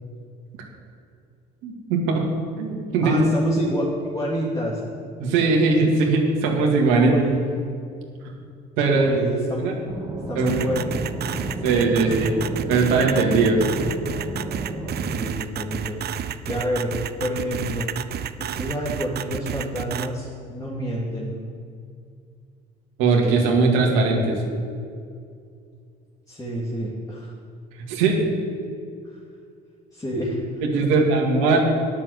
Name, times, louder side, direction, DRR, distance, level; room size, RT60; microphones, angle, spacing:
voice 1, 1.6-2.3 2.6-3.2 5.2-7.1 8.8-9.1 9.6-9.7 10.4-10.7 11.6-12.3 12.7-13.6 23.0-24.4 27.9-28.3 30.7-31.6, right 4 dB, 80° right, 0 dB, 2.1 m, -20 dB
voice 2, 3.0-4.8 6.9-7.5 8.9-9.7 10.3-11.0 15.1-16.0 16.5-16.9 17.2-17.9 18.4-21.4 26.3-27.3 29.0-29.2 29.9-30.4 30.7-30.9, equal, 15° left, -5 dB, 2.6 m, -28 dB
sound 1, 9.8-15.2, right 1 dB, 20° right, 2.3 m, -32 dB
sound 2, 10.5-20.1, right 10 dB, 50° right, 0.6 m, -30 dB
9.8 x 6.8 x 8.1 m, 2.4 s
hypercardioid pair, 65°, 21 cm